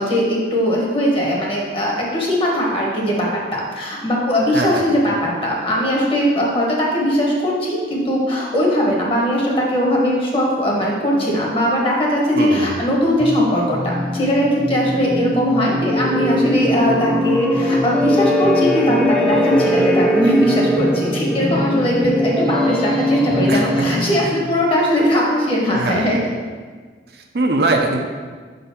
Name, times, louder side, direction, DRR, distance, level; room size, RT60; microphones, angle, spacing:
voice 1, 0.0-26.3, equal, 30° left, -2 dB, 1.2 m, -19 dB
voice 2, 12.3-12.8 23.5-23.7 24.2-24.3 25.8-26.1 27.1-28.0, right 2 dB, 65° right, 2 dB, 0.7 m, -21 dB
sound 1, 13.2-24.6, left 1 dB, 5° left, 0.4 m, -20 dB
5.2 x 4.0 x 5.7 m, 1.5 s
head